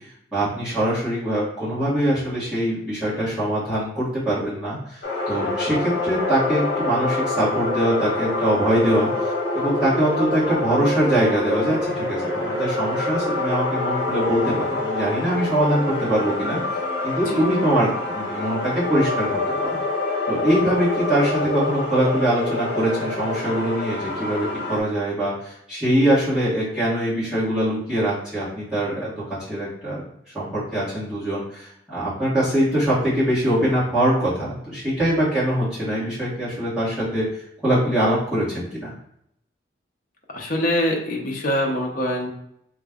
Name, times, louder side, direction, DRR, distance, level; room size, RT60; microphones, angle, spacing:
voice 1, 0.3-16.6 17.0-19.3 19.6-19.8 20.3-30.0 30.3-37.2 37.6-38.9, right 1 dB, 5° right, -12 dB, 1.3 m, -23 dB
sound 1, 5.0-24.8, left 2 dB, 75° left, 1.1 m, -26 dB
voice 2, 40.3-42.3, equal, 45° left, 0 dB, 0.8 m, -24 dB
4.0 x 2.4 x 3.6 m, 0.74 s
head